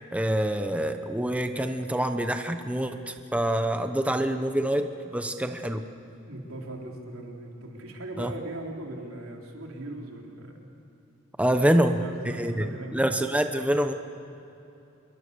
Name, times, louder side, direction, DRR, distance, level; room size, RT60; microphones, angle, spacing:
voice 1, 0.1-5.8 8.2-8.3 11.4-12.0 12.4-13.9, right 1 dB, 5° right, 6 dB, 0.9 m, -26 dB
voice 2, 6.2-10.6 11.6-13.1, right 1 dB, 85° right, 0 dB, 4.0 m, -39 dB
27.0 x 22.5 x 6.8 m, 2.9 s
head